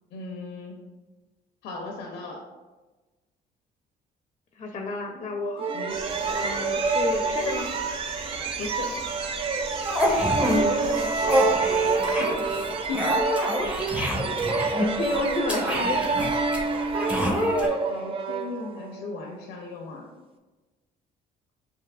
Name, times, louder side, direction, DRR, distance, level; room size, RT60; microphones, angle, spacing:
voice 1, 0.1-0.8 1.6-2.4 5.7-5.9 8.6-8.9 12.1-12.6 12.9-13.2 17.9-20.0, left 3 dB, 90° left, 1 dB, 0.6 m, -36 dB
voice 2, 4.6-5.6 6.3-7.7 10.4-11.1 14.3-16.0, left 3 dB, 35° left, 3 dB, 0.5 m, -31 dB
sound 1, 5.6-19.1, right 4 dB, 35° right, 0.4 m, -27 dB
sound 2, 5.9-12.0, right 2 dB, 55° right, 1.4 m, -40 dB
small creature eats meat or something full, 9.9-10.6 10.8-17.7, equal, 5° right, 0.8 m, -27 dB
5.9 x 3.0 x 2.3 m, 1.2 s
cardioid pair, 110°, 17 cm